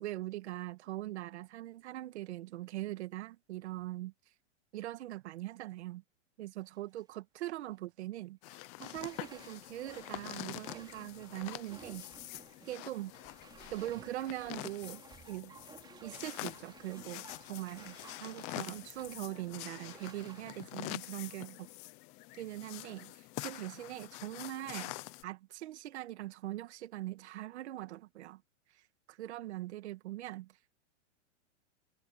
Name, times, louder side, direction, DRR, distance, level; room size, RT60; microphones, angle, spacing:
voice 1, 0.0-4.1 4.7-6.0 6.4-12.1 12.7-13.1 13.7-15.5 16.0-21.7 22.4-25.0 25.2-28.4 29.1-30.5, right 15 dB, 65° right, 2.0 m, -42 dB
Bathtub (filling or washing), 6.6-7.0 7.5-7.6 8.8-21.9 22.3-22.4, right 5 dB, 10° right, 3.0 m, -57 dB
sound 1, 8.4-25.2, left 21 dB, 20° left, 0.4 m, -46 dB
supercardioid pair, 155°, 36 cm